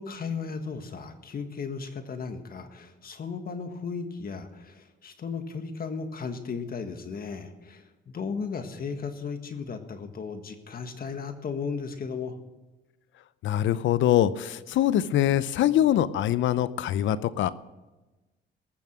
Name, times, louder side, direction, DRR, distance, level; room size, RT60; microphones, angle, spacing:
voice 1, 0.0-12.4, left 5 dB, 50° left, 7 dB, 1.6 m, -35 dB
voice 2, 13.4-17.5, left 12 dB, 70° left, 16 dB, 0.6 m, -23 dB
19.0 x 7.2 x 6.2 m, 1.1 s
cardioid pair, 90°, 20 cm